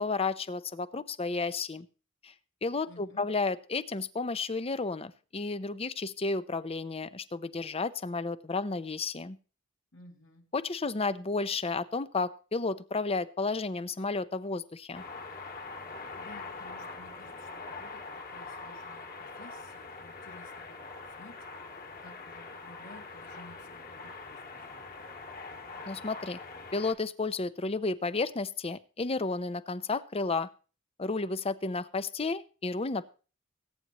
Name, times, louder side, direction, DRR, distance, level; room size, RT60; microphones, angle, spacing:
voice 1, 0.0-1.9 2.2-2.3 2.6-9.4 10.5-15.0 25.9-26.4 26.7-30.5 31.0-33.0, left 3 dB, 30° left, 14 dB, 0.6 m, -32 dB
voice 2, 2.9-3.3 9.9-10.4 15.9-24.8, left 1 dB, 65° left, 1 dB, 2.8 m, -55 dB
sound 1, 14.9-26.9, left 3 dB, 45° left, 2.2 m, -43 dB
22.0 x 9.3 x 3.0 m, 0.36 s
head